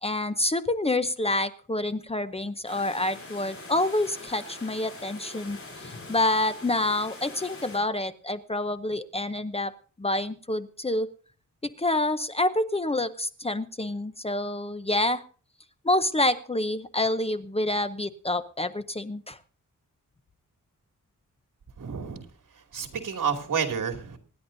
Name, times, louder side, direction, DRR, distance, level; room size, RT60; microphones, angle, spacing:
voice 1, 0.0-9.7 10.0-11.1 11.6-15.2 15.8-19.4, left 2 dB, 20° left, 11 dB, 0.7 m, -27 dB
sound 1, 2.7-7.8, left 2 dB, 45° left, 5.0 m, -43 dB
voice 2, 21.8-22.2 22.7-24.2, right 6 dB, 75° right, 4 dB, 2.7 m, -29 dB
26.0 x 10.5 x 2.7 m, 0.40 s
wide cardioid pair, 130°, 32 cm